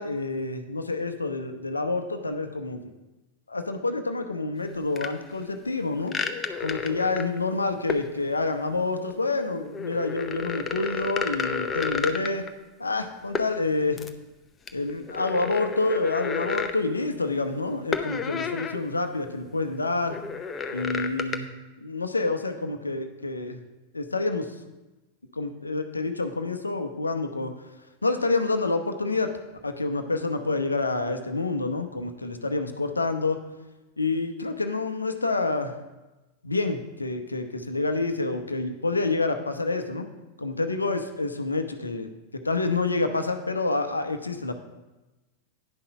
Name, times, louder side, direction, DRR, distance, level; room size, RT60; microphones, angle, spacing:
voice 1, 0.0-2.9 3.5-6.2 6.6-12.5 12.8-14.0 14.7-20.2 20.7-21.5 21.8-23.6 23.9-24.5 25.3-27.5 28.0-29.3 29.6-33.4 34.0-35.7 36.4-40.1 40.4-44.5, left 3 dB, 80° left, 7 dB, 0.7 m, -28 dB
sound 1, 5.0-5.1 6.1-7.4 7.9-8.1 9.6-12.5 13.4-13.5 13.9-14.1 14.7-16.8 17.9-18.8 19.2-19.3 20.1-21.4, left 5 dB, 20° left, 0.7 m, -31 dB
9.8 x 5.6 x 5.5 m, 1.1 s
figure-of-eight pair, 90°, 0 cm